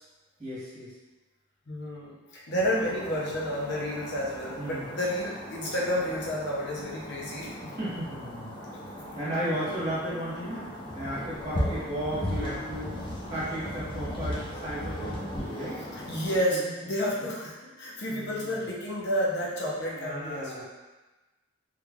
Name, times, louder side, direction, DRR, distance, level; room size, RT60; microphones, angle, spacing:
voice 1, 0.4-0.9 4.6-4.9 7.6-8.5 9.1-12.9 13.3-15.8 16.5-16.7 17.1-17.3 18.1-18.6 19.9-20.6, right 1 dB, 20° right, -10 dB, 1.3 m, -35 dB
voice 2, 1.7-7.5 16.1-20.6, equal, 60° left, -5 dB, 0.7 m, -30 dB
sound 1, 2.5-16.4, equal, 25° left, 0.7 m, -37 dB
3.1 x 2.4 x 3.5 m, 1.2 s
head